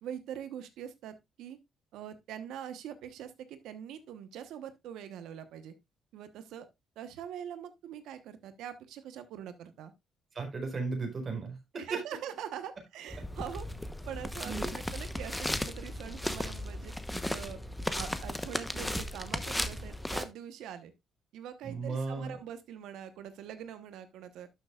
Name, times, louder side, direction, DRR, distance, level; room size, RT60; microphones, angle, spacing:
voice 1, 0.0-1.6 1.9-5.7 6.1-6.7 7.0-9.9 11.7-13.7 14.1-16.9 17.3-17.6 17.9-20.9 21.3-24.5, right 9 dB, 85° right, 1.1 m, -43 dB
voice 2, 10.3-11.6 14.4-14.8 17.1-17.3 21.6-22.4, right 4 dB, 40° right, 4.3 m, -35 dB
sound 1, 13.1-20.2, left 1 dB, 5° left, 1.0 m, -36 dB
12.0 x 6.7 x 2.4 m
cardioid pair, 90°, 0 cm